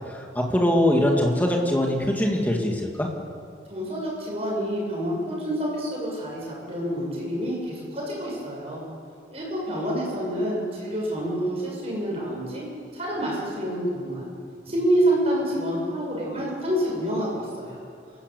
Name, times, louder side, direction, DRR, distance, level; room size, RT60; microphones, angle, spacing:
voice 1, 0.1-3.1, left 1 dB, 10° left, 0 dB, 2.6 m, -22 dB
voice 2, 3.7-8.8 9.3-12.7 12.9-14.3 14.7-17.8, right 1 dB, 35° right, -3 dB, 7.7 m, -27 dB
28.0 x 13.5 x 8.6 m, 2.4 s
head